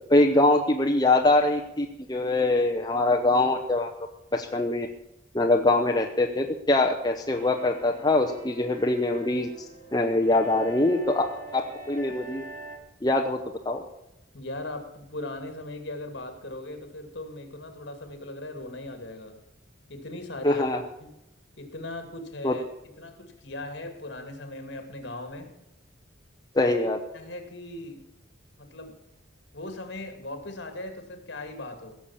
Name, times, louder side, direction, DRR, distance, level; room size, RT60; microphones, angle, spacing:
voice 1, 0.1-3.9 4.3-4.9 5.3-9.5 9.9-11.2 11.5-12.4 13.0-13.4 13.6-13.8 20.4-20.8 22.4-22.6 26.5-27.0, left 2 dB, 20° left, 2 dB, 0.8 m, -23 dB
sound 1, 7.3-12.8, right 2 dB, 40° right, 3.2 m, -43 dB
voice 2, 14.3-19.4 19.9-21.1 21.6-22.6 23.0-25.5 26.6-26.7 27.1-28.0 28.6-29.0 29.5-32.0, left 2 dB, 60° left, 6 dB, 2.4 m, -39 dB
17.5 x 7.0 x 7.2 m, 0.87 s
head